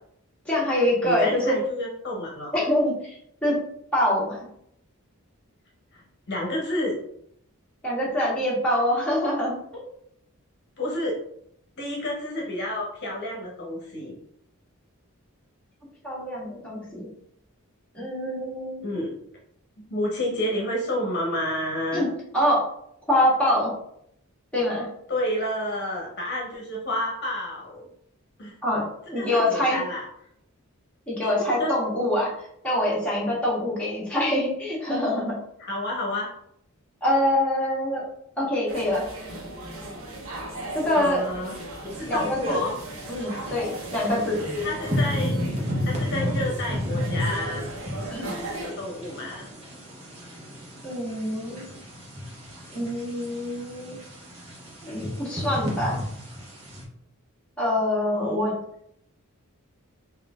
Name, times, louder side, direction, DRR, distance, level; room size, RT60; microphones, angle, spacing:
voice 1, 0.4-1.6 2.5-2.9 3.4-3.5 3.9-4.5 7.8-9.6 16.0-17.1 17.9-18.8 21.9-22.1 22.3-22.6 23.1-23.7 24.5-24.9 28.6-28.8 29.1-29.8 31.1-32.3 32.6-35.3 37.0-38.0 38.4-39.0 40.7-41.2 42.1-42.6 43.1-44.4 48.1-48.3 50.8-51.8 52.7-54.0 54.8-56.0 57.6-58.5, left 1 dB, 5° left, -7 dB, 1.6 m, -24 dB
voice 2, 1.0-2.5 5.9-7.0 10.8-11.2 11.8-14.2 18.8-19.2 19.9-22.0 25.1-27.9 28.4-28.6 29.1-30.0 31.4-31.7 35.7-36.3 40.9-41.5 41.8-42.8 44.6-45.4 45.8-47.7 48.6-49.5 58.1-58.4, left 1 dB, 50° left, -3 dB, 1.0 m, -30 dB
sound 1, 38.7-48.7, right 1 dB, 65° right, 1.1 m, -37 dB
sound 2, 41.9-56.8, left 1 dB, 30° right, 1.2 m, -33 dB
4.1 x 2.7 x 3.6 m, 0.72 s
head